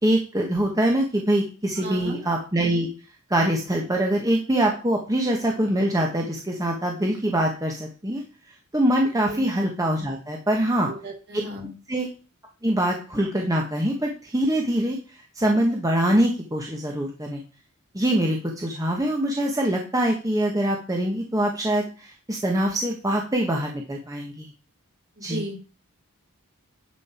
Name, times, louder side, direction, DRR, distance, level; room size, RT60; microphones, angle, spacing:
voice 1, 0.0-2.9 3.3-8.2 8.7-10.9 11.9-12.1 12.6-15.0 15.4-17.4 17.9-24.5 25.2-25.4, right 1 dB, 15° right, 0 dB, 1.3 m, -24 dB
voice 2, 1.8-2.2 9.2-9.4 10.5-11.7 25.2-25.5, right 1 dB, 50° right, 0 dB, 3.8 m, -35 dB
11.0 x 5.5 x 4.4 m, 0.35 s
head